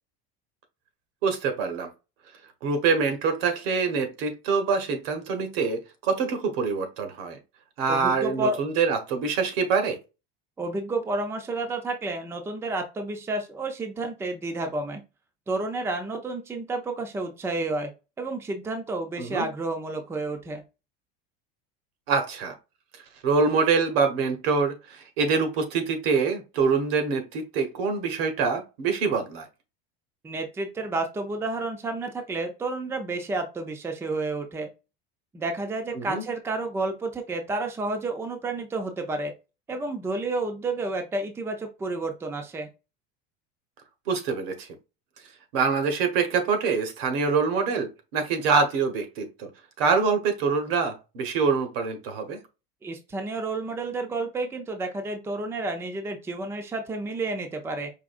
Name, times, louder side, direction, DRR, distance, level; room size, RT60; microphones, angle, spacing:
voice 1, 1.2-1.9 2.6-7.4 7.8-10.0 19.2-19.5 22.1-22.5 23.2-29.4 35.9-36.2 44.1-44.7 45.5-49.5 49.8-52.4, right 5 dB, 80° right, 1.3 m, -25 dB
voice 2, 7.9-8.6 10.6-15.0 15.5-17.9 18.2-20.6 30.2-34.7 35.3-39.3 39.7-42.7 52.8-57.9, right 2 dB, 10° right, 0.5 m, -30 dB
4.9 x 2.8 x 2.5 m
cardioid pair, 155°, 29 cm